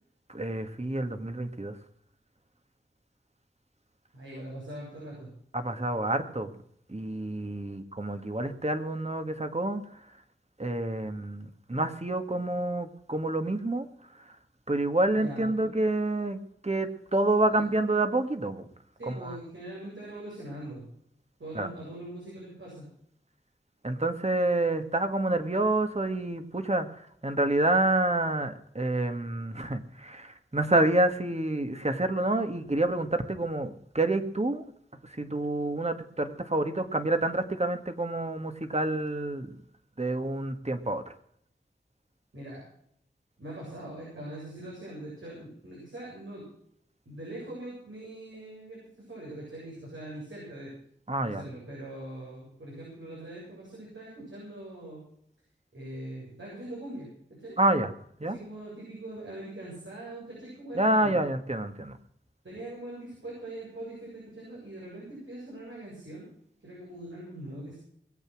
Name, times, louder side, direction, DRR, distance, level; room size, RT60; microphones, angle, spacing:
voice 1, 0.3-1.7 5.5-6.5 6.9-9.8 10.6-13.9 14.7-18.6 19.1-19.4 21.5-21.7 23.8-34.6 35.0-39.6 40.0-41.0 51.1-51.4 57.6-57.9 58.2-58.4 60.8-62.0, right 2 dB, 35° right, 7 dB, 1.9 m, -28 dB
voice 2, 4.1-5.3 15.1-15.7 17.5-17.6 19.0-20.9 21.4-22.9 42.3-42.6 43.4-46.5 47.0-50.7 51.2-55.0 55.7-57.6 58.2-61.2 62.4-66.3 66.6-67.8, right 1 dB, 90° right, -5 dB, 8.0 m, -42 dB
21.0 x 8.4 x 6.2 m, 0.68 s
wide cardioid pair, 50°, 19 cm